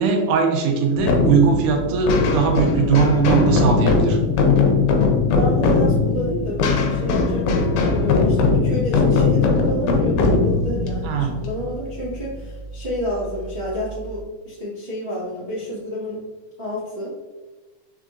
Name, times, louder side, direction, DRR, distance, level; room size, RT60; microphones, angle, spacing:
voice 1, 0.0-4.2 11.0-11.4, right 5 dB, 90° right, 3 dB, 2.2 m, -19 dB
sound 1, 1.0-12.4, left 4 dB, 85° left, 2.2 m, -19 dB
voice 2, 5.3-16.2 16.6-17.1, equal, 50° right, -11 dB, 0.7 m, -29 dB
4.7 x 4.4 x 2.4 m, 1.2 s
omnidirectional pair, 3.6 m